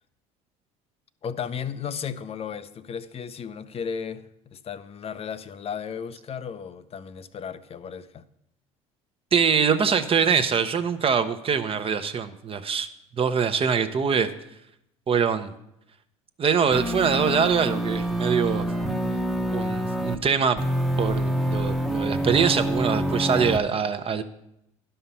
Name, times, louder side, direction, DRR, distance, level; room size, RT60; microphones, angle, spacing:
voice 1, 1.2-8.3, left 7 dB, 35° left, 0.6 m, -35 dB
voice 2, 9.3-12.9 13.2-14.3 15.1-15.5 16.4-18.7 19.5-20.6 21.0-24.2, right 6 dB, 35° right, 0.8 m, -23 dB
sound 1, 16.7-20.2 20.6-23.6, right 1 dB, ahead, 0.9 m, -26 dB
11.0 x 5.7 x 5.5 m
hypercardioid pair, 75°, 17 cm